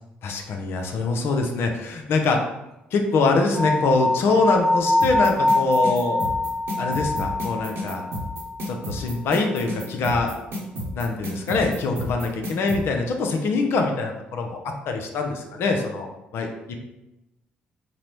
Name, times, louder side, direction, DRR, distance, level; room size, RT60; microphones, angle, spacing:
voice 1, 0.2-2.4 2.9-6.2 6.8-8.0 8.7-10.3 10.9-14.6 14.9-16.8, left 3 dB, 65° left, 3 dB, 0.5 m, -24 dB
sound 1, 3.5-8.6, left 2 dB, ahead, 0.9 m, -24 dB
sound 2, 5.0-12.8, equal, 65° right, 0.8 m, -31 dB
3.9 x 2.0 x 3.0 m, 0.94 s
hypercardioid pair, 50°, 4 cm